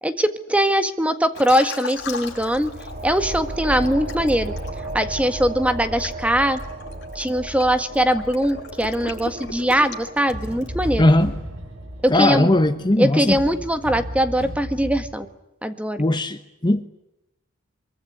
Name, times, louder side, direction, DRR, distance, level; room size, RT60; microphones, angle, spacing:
voice 1, 0.0-2.7 3.0-4.5 4.9-6.6 7.2-11.0 12.0-12.5 13.0-15.3 15.6-16.0, equal, 5° right, 9 dB, 1.7 m, -21 dB
Liquid, 1.3-3.4 3.8-10.8, left 4 dB, 60° left, 7.1 m, -37 dB
sound 1, 1.9-13.2, right 2 dB, 55° right, 3.0 m, -35 dB
sound 2, 8.8-15.2, equal, 75° right, 5.1 m, -35 dB
voice 2, 11.0-11.3 12.1-13.4 16.0-16.8, left 1 dB, 25° left, 9 dB, 1.0 m, -18 dB
24.0 x 23.5 x 10.0 m, 0.88 s
head